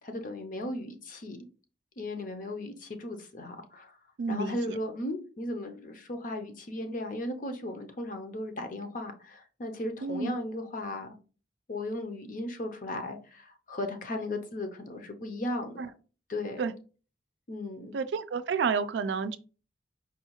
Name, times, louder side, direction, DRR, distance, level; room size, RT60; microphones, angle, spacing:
voice 1, 0.0-1.4 2.0-3.9 4.3-11.1 11.7-15.8 16.3-16.7 17.5-17.9, left 1 dB, 50° left, 0.7 m, -36 dB
voice 2, 4.2-4.8 10.0-10.3 15.8-15.9 16.6-16.7 17.9-19.4, right 5 dB, 75° right, 0.4 m, -30 dB
4.7 x 2.3 x 3.0 m
head